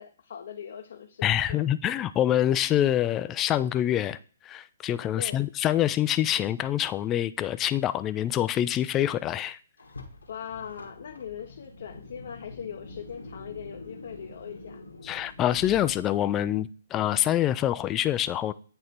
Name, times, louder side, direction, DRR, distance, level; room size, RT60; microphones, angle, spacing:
voice 1, 0.0-1.7 5.2-5.4 10.3-14.8, left 8 dB, 55° left, 0.7 m, -40 dB
voice 2, 1.2-4.2 4.4-9.6 15.0-18.5, left 12 dB, 20° left, 0.3 m, -26 dB
Car, 9.8-16.3, left 3 dB, 80° left, 1.3 m, -45 dB
8.6 x 3.3 x 4.3 m
figure-of-eight pair, 130°, 0 cm